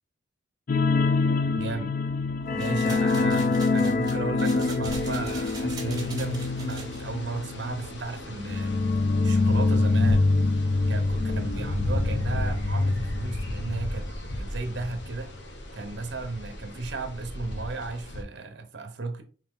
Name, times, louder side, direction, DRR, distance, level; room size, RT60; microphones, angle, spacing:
sound 1, 0.7-13.9 14.2-14.4 14.8-14.9, left 3 dB, 45° left, 0.3 m, -25 dB
voice 1, 1.5-1.9 2.5-8.9 9.2-10.3 10.9-14.1 14.4-15.3 15.7-19.2, right 3 dB, 60° right, 0.8 m, -34 dB
sound 2, 2.6-7.0, right 4 dB, 20° right, 0.9 m, -42 dB
sound 3, 4.8-18.2, left 1 dB, 65° left, 0.9 m, -37 dB
4.3 x 3.2 x 3.6 m
head